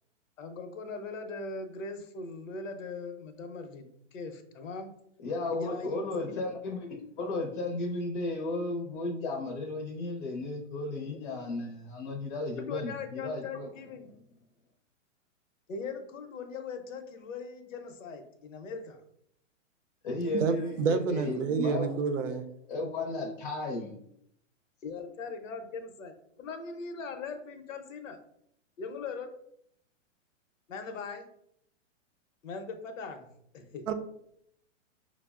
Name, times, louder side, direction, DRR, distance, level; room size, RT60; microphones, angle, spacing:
voice 1, 0.4-4.9 5.5-6.4 12.6-14.1 15.7-19.0 24.8-28.2 28.8-29.3 30.7-31.3 32.4-33.3 33.5-33.9, left 4 dB, 85° left, 6 dB, 0.7 m, -40 dB
voice 2, 5.2-13.7 20.0-21.9 22.7-23.9, left 2 dB, 45° left, 0 dB, 0.6 m, -34 dB
voice 3, 20.3-22.5 33.9-34.0, right 5 dB, 75° right, 9 dB, 0.6 m, -29 dB
5.9 x 2.0 x 2.3 m, 0.72 s
hypercardioid pair, 155°, 38 cm